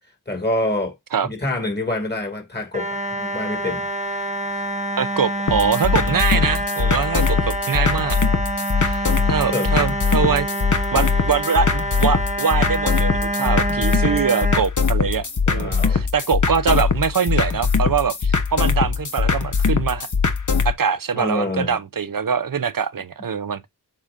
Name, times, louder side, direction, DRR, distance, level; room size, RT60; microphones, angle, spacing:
voice 1, 0.3-0.9 1.2-3.9 4.1-4.3 6.4-6.5 9.5-9.7 14.0-14.1 15.5-16.0 21.1-21.7, left 2 dB, 25° left, 2.5 m, -26 dB
sound 1, 2.7-14.6, right 1 dB, 20° right, 0.8 m, -26 dB
voice 2, 5.0-8.2 8.8-10.5 10.9-20.1 20.6-23.7, right 6 dB, 60° right, 0.7 m, -23 dB
sound 2, 5.5-20.7, left 5 dB, 50° left, 1.1 m, -21 dB
7.5 x 5.0 x 2.6 m
wide cardioid pair, 60°, 39 cm